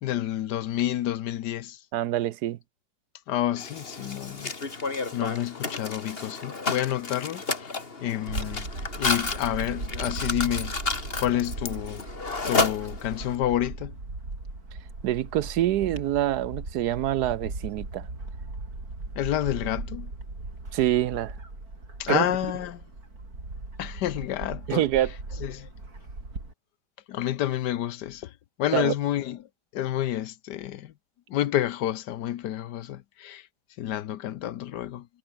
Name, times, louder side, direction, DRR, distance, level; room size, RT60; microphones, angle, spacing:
voice 1, 0.0-1.8 3.3-4.5 5.1-8.7 9.0-12.0 12.5-14.0 19.1-20.1 22.0-22.8 23.8-24.9 25.4-25.7 27.1-28.3 28.6-30.9 31.3-33.5 33.8-35.1, left 12 dB, 80° left, 1.4 m, -29 dB
voice 2, 1.9-2.6 15.0-18.1 20.7-21.3 22.1-22.2 24.7-25.1 28.7-28.9, right 13 dB, 75° right, 1.2 m, -25 dB
Mechanisms, 3.6-13.3, left 3 dB, 35° left, 2.3 m, -31 dB
Bird / Wind, 8.3-26.5, right 2 dB, 60° right, 5.9 m, -38 dB
omnidirectional pair, 1.8 m